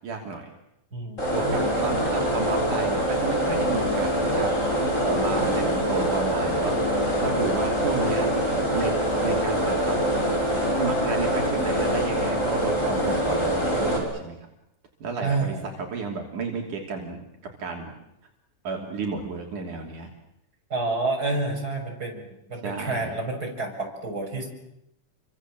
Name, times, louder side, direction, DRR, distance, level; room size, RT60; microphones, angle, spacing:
voice 1, 0.0-0.5 1.3-6.7 7.2-8.5 8.7-8.9 9.2-10.0 10.8-14.4 15.0-15.5 15.9-17.2 17.6-17.9 18.6-20.1 22.6-23.1, right 4 dB, 70° right, 1 dB, 4.5 m, -32 dB
voice 2, 0.9-2.0 15.2-15.7 20.7-24.5, right 3 dB, 25° right, 1 dB, 7.1 m, -29 dB
sound 1, 1.2-14.0, equal, 20° left, 7.4 m, -24 dB
29.5 x 25.0 x 7.7 m, 0.84 s
omnidirectional pair, 3.7 m